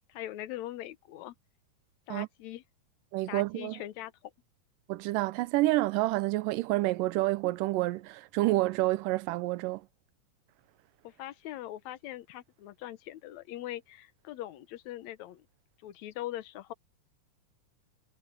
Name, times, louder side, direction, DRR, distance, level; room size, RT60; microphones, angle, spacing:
voice 1, 0.1-1.4 2.1-2.6 3.3-4.1 11.0-15.5 15.8-16.7, left 14 dB, 70° left, 2.0 m, -41 dB
voice 2, 3.1-3.8 4.9-9.8, right 19 dB, 90° right, 2.3 m, -28 dB
omnidirectional pair, 3.8 m